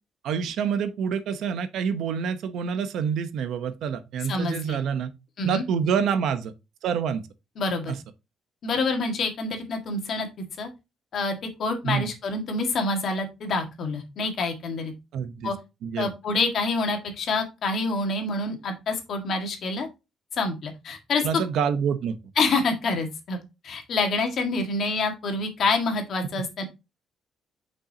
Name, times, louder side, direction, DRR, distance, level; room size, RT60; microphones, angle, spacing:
voice 1, 0.2-5.1 5.4-6.5 6.8-7.2 7.9-8.0 11.8-12.1 15.1-15.5 15.8-16.1 21.2-22.2, right 7 dB, 70° right, 0.8 m, -27 dB
voice 2, 4.3-4.8 5.4-5.6 7.6-7.9 8.6-10.7 11.1-14.9 15.4-15.5 16.0-19.9 20.3-21.4 22.4-23.4 23.6-26.6, left 3 dB, 50° left, 1.7 m, -27 dB
7.0 x 5.4 x 2.8 m
cardioid pair, 165°, 0 cm